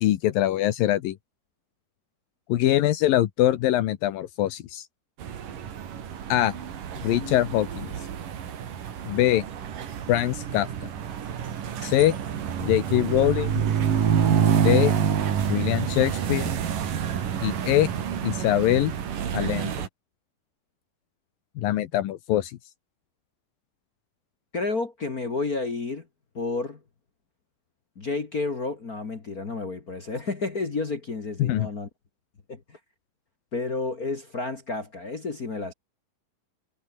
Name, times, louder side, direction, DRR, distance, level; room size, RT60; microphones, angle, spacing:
voice 1, 0.0-1.2 2.5-4.9 6.3-6.5 7.0-7.9 9.1-9.4 10.1-10.9 11.8-12.1 12.6-13.5 14.6-14.9 15.5-16.5 17.4-17.9 18.2-18.9 19.3-19.7 21.6-22.6 31.4-31.7, left 13 dB, 80° left, 2.9 m, -23 dB
sound 1, 5.2-19.9, right 8 dB, 70° right, 4.0 m, -27 dB
voice 2, 24.5-26.0 26.3-26.8 28.0-31.9 32.5-32.8 33.5-35.7, left 3 dB, 35° left, 1.6 m, -31 dB
omnidirectional pair, 4.1 m